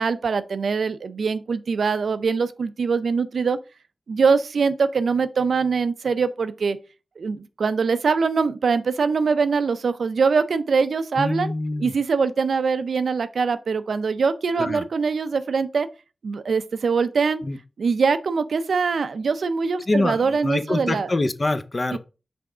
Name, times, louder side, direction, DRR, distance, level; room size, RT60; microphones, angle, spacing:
voice 1, 0.0-3.6 4.1-6.8 7.2-11.5 11.8-15.9 16.2-17.4 17.8-21.1 21.9-22.0, right 5 dB, 80° right, 0.5 m, -23 dB
voice 2, 11.2-11.9 14.6-14.8 17.4-17.6 19.9-22.0, left 2 dB, 35° left, 0.6 m, -25 dB
6.0 x 3.4 x 4.9 m
wide cardioid pair, 90°, 0 cm